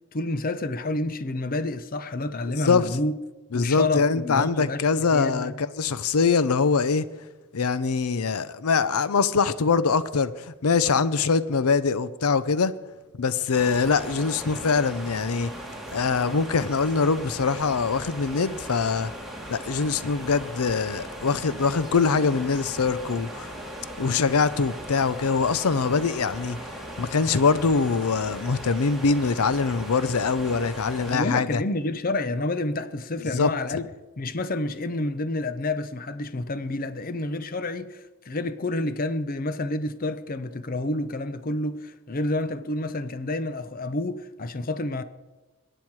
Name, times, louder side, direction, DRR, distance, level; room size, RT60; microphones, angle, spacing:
voice 1, 0.1-3.1 3.5-5.5 31.1-33.9 34.2-45.0, left 2 dB, 40° left, 0.6 m, -29 dB
voice 2, 3.5-7.1 7.5-12.7 13.2-15.5 15.9-19.1 19.5-23.5 24.0-26.6 27.0-31.6 33.3-33.5, left 5 dB, 90° left, 0.6 m, -23 dB
sound 1, 13.5-31.2, equal, ahead, 2.0 m, -38 dB
22.5 x 9.0 x 4.7 m
head